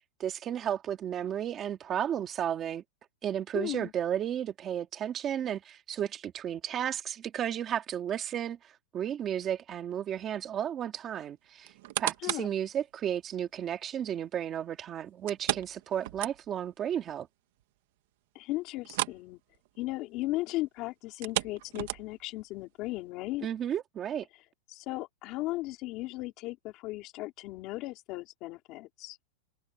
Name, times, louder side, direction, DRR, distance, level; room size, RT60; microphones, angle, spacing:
voice 1, 0.2-2.8 3.2-17.3 23.4-24.2, right 10 dB, 20° right, 2.2 m, -33 dB
voice 2, 3.5-3.9 12.2-12.5 18.4-19.4 19.8-23.5 24.7-29.2, left 18 dB, 30° left, 3.5 m, -36 dB
sound 1, 11.6-12.6 13.1-13.2 15.3-16.7 17.1-17.2 17.6-17.7 18.8-19.3 19.5-19.8 21.1-22.3 23.0-23.1, right 17 dB, 50° right, 1.3 m, -34 dB
supercardioid pair, 170°, 0 cm